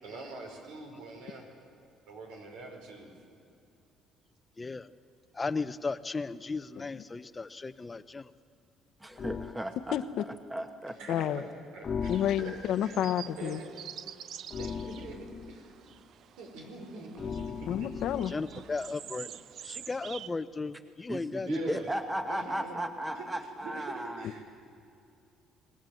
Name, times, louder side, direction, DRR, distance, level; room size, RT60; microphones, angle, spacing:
voice 1, 0.0-1.5 2.1-3.1 10.9-12.1 12.4-13.0 13.4-13.7 14.6-15.7 16.4-17.9 18.7-18.8 21.4-21.9 22.3-22.8 23.1-24.4, right 3 dB, 90° right, 2 dB, 5.1 m, -44 dB
voice 2, 4.6-4.9 5.3-8.3 18.3-19.3 19.6-21.8, left 3 dB, 20° left, 13 dB, 0.7 m, -36 dB
voice 3, 9.0-10.0 10.5-11.2 21.1-24.2, right 1 dB, 10° right, 7 dB, 1.1 m, -35 dB
sound 1, 9.2-9.6 11.8-12.8 14.5-15.6 17.2-18.5, left 6 dB, 40° left, 1.0 m, -38 dB
voice 4, 11.1-11.4 12.1-13.6 17.7-18.3, left 10 dB, 65° left, 11 dB, 1.0 m, -29 dB
sound 2, 12.0-20.3, right 9 dB, 55° right, 0.6 m, -48 dB
27.5 x 19.0 x 7.8 m, 2.6 s
cardioid pair, 115°, 0 cm